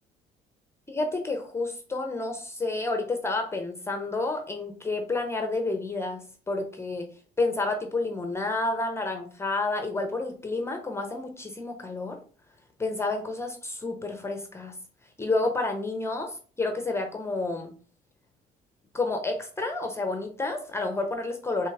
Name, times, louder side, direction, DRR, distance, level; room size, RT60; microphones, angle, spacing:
voice 1, 0.9-6.2 6.5-7.1 7.4-12.2 12.8-14.8 15.2-17.7 18.9-21.7, left 2 dB, 15° left, 5 dB, 0.7 m, -30 dB
4.4 x 3.3 x 3.5 m, 0.42 s
cardioid pair, 110°, 17 cm